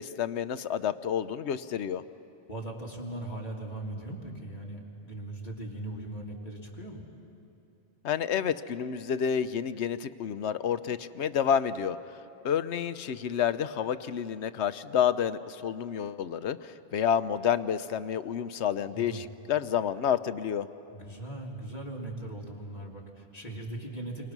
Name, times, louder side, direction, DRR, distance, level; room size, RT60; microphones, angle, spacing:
voice 1, 0.0-2.0 8.0-12.2 12.4-20.7, left 8 dB, 85° left, 13 dB, 1.0 m, -29 dB
voice 2, 2.5-7.0 18.9-19.2 20.9-24.3, right 1 dB, 35° left, -3 dB, 3.2 m, -39 dB
29.5 x 24.5 x 6.1 m, 2.9 s
omnidirectional pair, 1.1 m